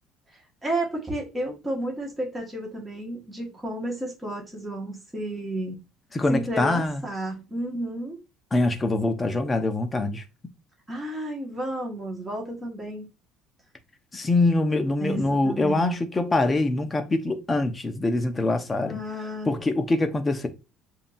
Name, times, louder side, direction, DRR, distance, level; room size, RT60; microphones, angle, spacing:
voice 1, 0.3-5.8 6.3-8.2 10.9-13.1 15.0-16.0 18.7-19.5, right 1 dB, 10° right, 1.5 m, -32 dB
voice 2, 6.1-7.0 8.5-10.2 14.1-19.0 19.5-20.5, left 2 dB, 15° left, 0.8 m, -24 dB
7.1 x 2.8 x 2.6 m
cardioid pair, 135°, 0 cm